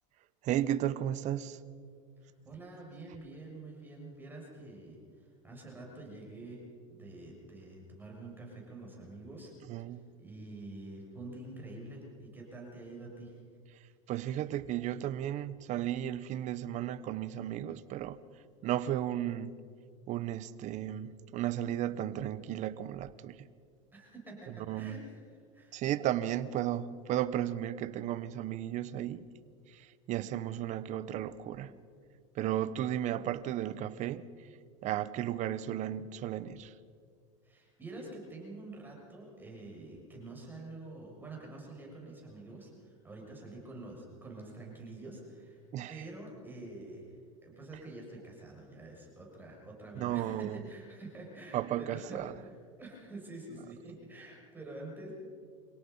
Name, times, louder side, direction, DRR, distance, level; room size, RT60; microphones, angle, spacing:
voice 1, 0.4-1.6 9.7-10.1 14.1-18.2 18.6-19.6 20.1-23.5 24.7-25.0 25.7-29.3 29.7-31.8 32.3-34.3 34.8-36.7 45.7-46.0 50.0-50.6 51.5-52.3, right 12 dB, 45° right, 1.0 m, -34 dB
voice 2, 2.2-6.6 6.9-9.5 9.8-13.4 23.9-25.2 25.5-25.8 37.4-45.6 45.9-47.1 47.4-55.1, right 2 dB, 10° right, 6.8 m, -47 dB
26.5 x 17.5 x 5.5 m
supercardioid pair, 120°, 17 cm